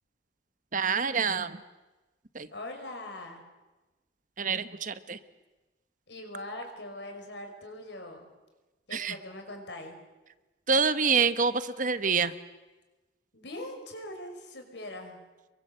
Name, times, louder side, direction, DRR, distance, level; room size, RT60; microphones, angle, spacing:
voice 1, 0.7-1.6 2.3-2.5 4.4-5.2 8.9-9.2 10.7-12.3, right 5 dB, 45° right, 12 dB, 1.1 m, -27 dB
voice 2, 2.5-3.4 6.1-8.3 8.9-10.0 13.3-15.2, left 1 dB, 75° left, 4 dB, 5.7 m, -41 dB
29.5 x 23.0 x 7.9 m, 1.1 s
head